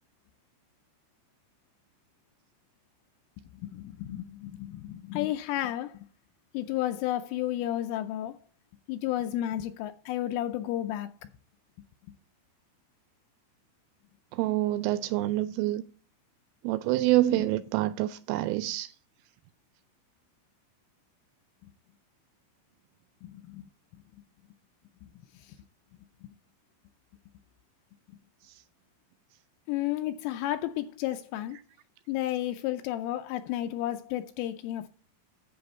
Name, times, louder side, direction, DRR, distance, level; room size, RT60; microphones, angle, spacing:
voice 1, 3.6-6.1 6.5-8.4 8.9-11.1 23.2-23.7 25.0-25.1 25.4-25.6 26.2-26.3 29.7-31.6 32.1-34.9, left 13 dB, 85° left, 3.0 m, -32 dB
voice 2, 14.3-15.8 16.6-18.9, right 15 dB, 85° right, 3.1 m, -27 dB
10.5 x 6.9 x 4.2 m
omnidirectional pair, 5.9 m